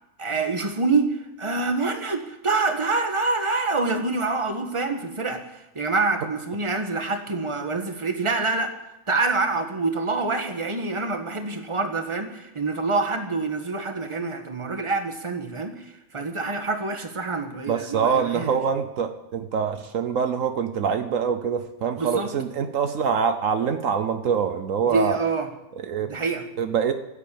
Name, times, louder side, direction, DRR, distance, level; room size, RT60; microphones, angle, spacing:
voice 1, 0.2-8.7 9.1-18.6 22.0-22.3 24.9-25.5 26.0-26.4, right 3 dB, 20° right, 5 dB, 1.4 m, -26 dB
voice 2, 17.7-25.2 25.8-26.1 26.6-26.9, right 6 dB, 70° right, 8 dB, 1.2 m, -24 dB
16.0 x 8.4 x 8.5 m, 0.93 s
omnidirectional pair, 1.5 m